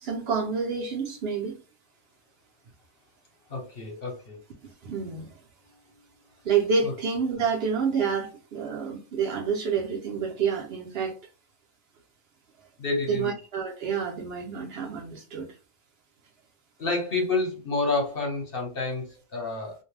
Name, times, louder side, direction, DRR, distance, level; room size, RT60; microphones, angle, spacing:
voice 1, 0.0-1.6 4.8-5.3 6.4-11.1 13.1-15.5, right 6 dB, 60° right, 0.7 m, -28 dB
voice 2, 3.5-4.4 6.8-6.9 12.8-13.3 16.8-19.7, left 3 dB, 50° left, 1.1 m, -29 dB
2.5 x 2.1 x 3.1 m
omnidirectional pair, 1.3 m